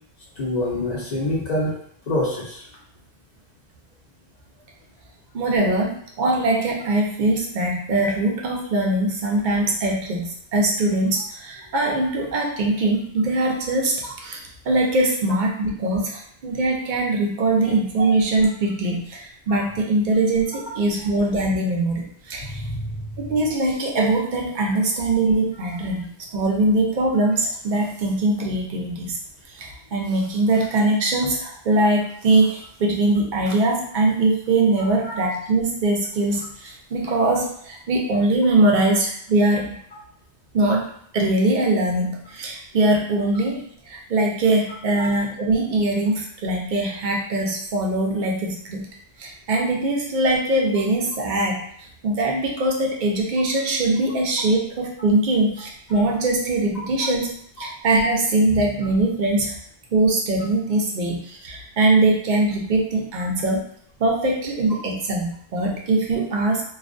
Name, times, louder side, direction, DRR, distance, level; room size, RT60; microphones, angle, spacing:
voice 1, 0.4-1.7 2.1-2.6 22.7-22.8 35.0-35.1 57.6-57.7, left 1 dB, 50° left, -4 dB, 0.6 m, -25 dB
voice 2, 5.3-14.4 14.7-22.6 23.2-26.1 26.3-29.2 29.5-39.7 40.5-40.8 41.1-48.9 49.2-51.6 52.0-59.5 59.9-63.6 64.0-66.6, right 2 dB, 55° right, -1 dB, 0.6 m, -22 dB
2.3 x 2.1 x 2.5 m, 0.65 s
omnidirectional pair, 1.1 m